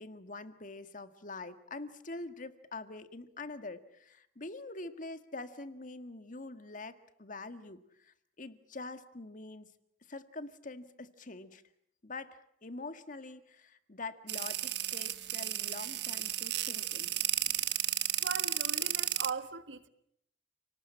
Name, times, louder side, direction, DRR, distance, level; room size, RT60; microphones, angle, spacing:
voice 1, 0.0-9.7 10.1-11.6 12.0-17.1, left 3 dB, 45° left, 1.7 m, -45 dB
sound 1, 14.3-19.3, right 13 dB, 65° right, 1.2 m, -33 dB
voice 2, 18.2-19.9, right 4 dB, 90° right, 1.5 m, -39 dB
29.5 x 19.0 x 8.7 m
head